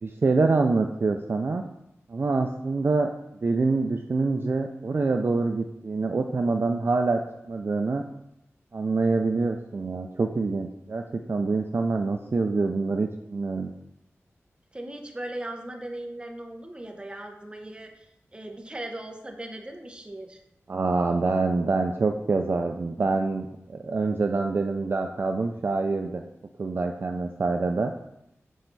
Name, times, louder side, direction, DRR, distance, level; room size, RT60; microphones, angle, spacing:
voice 1, 0.0-1.6 2.1-3.1 3.4-7.2 7.5-8.0 8.7-13.7 20.7-26.2 26.6-27.9, right 3 dB, 45° right, 4 dB, 0.4 m, -25 dB
voice 2, 14.7-18.1 18.3-20.4, right 1 dB, 20° right, 3 dB, 0.9 m, -38 dB
6.4 x 4.3 x 4.0 m, 0.81 s
wide cardioid pair, 100°, 5 cm